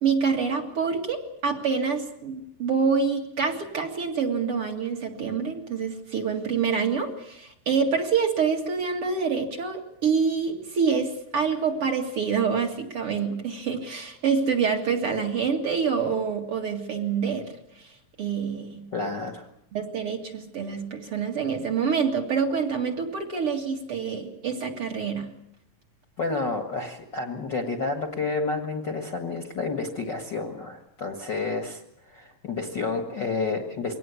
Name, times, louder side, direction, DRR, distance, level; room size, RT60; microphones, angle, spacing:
voice 1, 0.0-17.5 18.2-18.8 19.7-25.3, right 6 dB, 45° right, 2 dB, 2.7 m, -26 dB
voice 2, 18.9-19.5 26.2-31.8 32.1-34.0, left 3 dB, 40° left, 4 dB, 1.7 m, -30 dB
23.0 x 18.5 x 8.4 m, 0.75 s
omnidirectional pair, 4.0 m